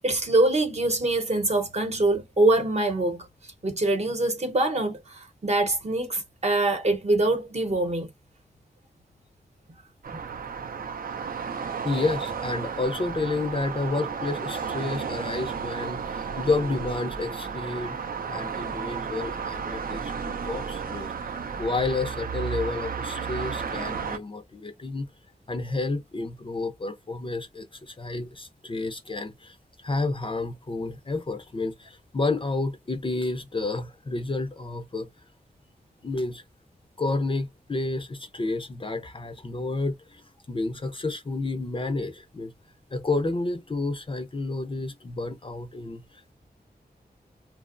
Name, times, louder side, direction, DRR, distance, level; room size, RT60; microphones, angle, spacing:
voice 1, 0.0-3.2 3.6-8.1, right 2 dB, 40° right, 0.8 m, -24 dB
sound 1, 10.0-24.2, right 6 dB, 60° right, 0.4 m, -33 dB
voice 2, 11.4-18.0 18.3-21.3 21.6-25.1 25.5-35.1 36.0-36.4 37.0-40.2 40.5-42.5 42.9-46.2, left 3 dB, 30° left, 0.4 m, -30 dB
2.8 x 2.0 x 2.4 m
wide cardioid pair, 120°, 17 cm